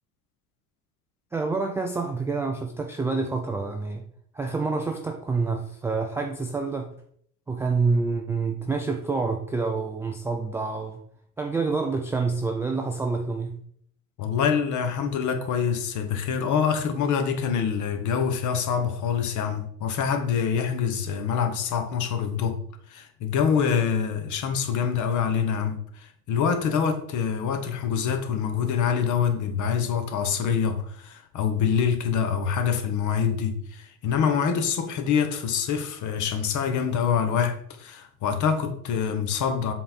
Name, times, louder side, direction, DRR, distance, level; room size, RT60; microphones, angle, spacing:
voice 1, 1.3-4.0 4.3-6.9 7.5-11.0 11.4-13.6, right 4 dB, 5° right, 0.4 m, -27 dB
voice 2, 14.2-22.6 22.9-39.7, left 7 dB, 40° left, 1.2 m, -25 dB
7.4 x 3.8 x 4.2 m
figure-of-eight pair, 75°, 47 cm